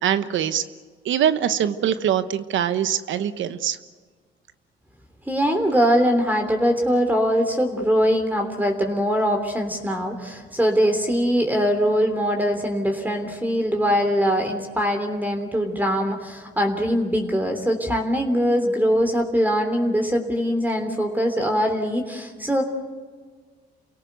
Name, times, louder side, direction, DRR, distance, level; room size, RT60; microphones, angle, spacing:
voice 1, 0.0-0.6 1.0-3.8, right 9 dB, 75° right, 12 dB, 1.1 m, -23 dB
voice 2, 5.3-22.6, equal, 10° right, 4 dB, 3.3 m, -22 dB
28.5 x 17.5 x 8.1 m, 1.6 s
cardioid pair, 90°, 20 cm